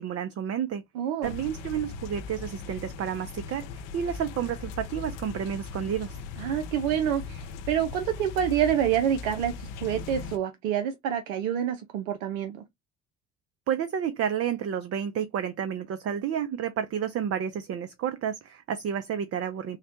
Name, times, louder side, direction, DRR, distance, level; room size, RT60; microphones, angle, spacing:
voice 1, 0.0-0.8 1.2-6.2 13.7-19.8, right 8 dB, 40° right, 0.5 m, -30 dB
voice 2, 1.0-1.3 6.4-7.4 7.7-12.6, right 9 dB, 80° right, 0.6 m, -27 dB
sound 1, 1.2-10.4, left 4 dB, 80° left, 0.7 m, -39 dB
3.9 x 2.1 x 2.8 m
hypercardioid pair, 60°, 38 cm